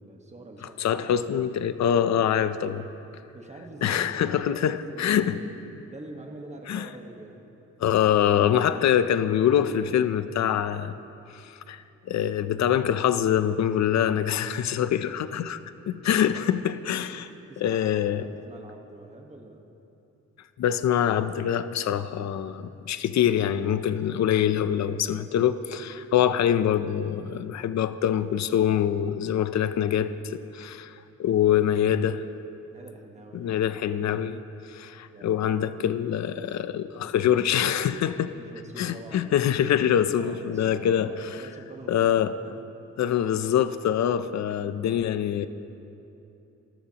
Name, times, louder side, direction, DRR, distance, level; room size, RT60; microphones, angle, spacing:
voice 1, 0.0-1.1 3.3-5.5 5.9-7.5 13.8-14.2 15.5-15.6 17.1-19.6 32.7-34.0 35.1-35.7 38.3-39.3 40.2-42.6, right 2 dB, 25° right, 2 dB, 1.3 m, -45 dB
voice 2, 0.8-2.8 3.8-5.4 6.7-6.9 7.8-11.0 11.3-15.6 15.9-17.2 17.6-18.3 20.6-30.9 31.2-32.2 33.3-34.4 34.6-38.3 38.8-41.1 41.9-42.3 43.0-45.5, left 9 dB, 70° left, 12 dB, 0.5 m, -24 dB
25.5 x 14.0 x 2.9 m, 2.8 s
wide cardioid pair, 165°, 29 cm